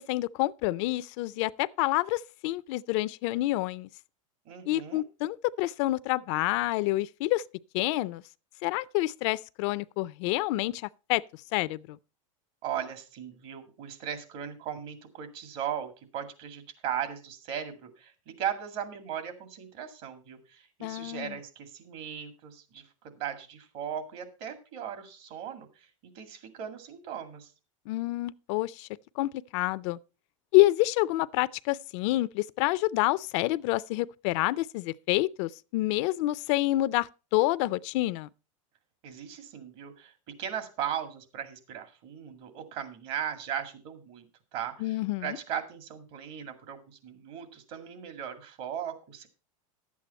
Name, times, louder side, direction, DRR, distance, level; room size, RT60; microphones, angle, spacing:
voice 1, 0.0-3.9 4.7-7.4 7.7-8.2 8.6-10.8 11.1-11.2 11.5-12.0 20.8-21.3 27.9-28.9 29.2-30.0 30.5-38.3 44.8-45.4, left 18 dB, 60° left, 0.4 m, -28 dB
voice 2, 4.5-5.0 12.6-27.5 39.0-40.1 40.4-44.3 44.5-49.3, right 9 dB, 55° right, 2.2 m, -38 dB
11.0 x 8.4 x 4.2 m
supercardioid pair, 120°, 18 cm